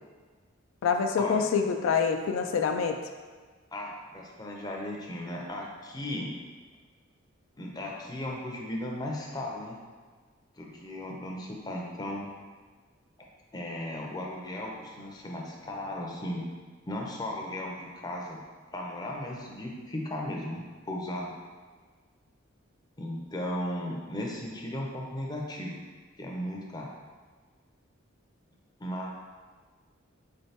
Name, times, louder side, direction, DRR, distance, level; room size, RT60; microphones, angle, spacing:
voice 1, 0.8-3.0, left 6 dB, 85° left, 5 dB, 0.3 m, -26 dB
voice 2, 3.7-6.3 7.6-9.8 10.6-12.3 13.5-16.4 16.9-18.4 18.7-21.3 23.0-25.8 26.2-26.9 28.8-29.1, left 1 dB, 20° left, -1 dB, 0.5 m, -36 dB
4.3 x 3.2 x 2.7 m, 1.5 s
head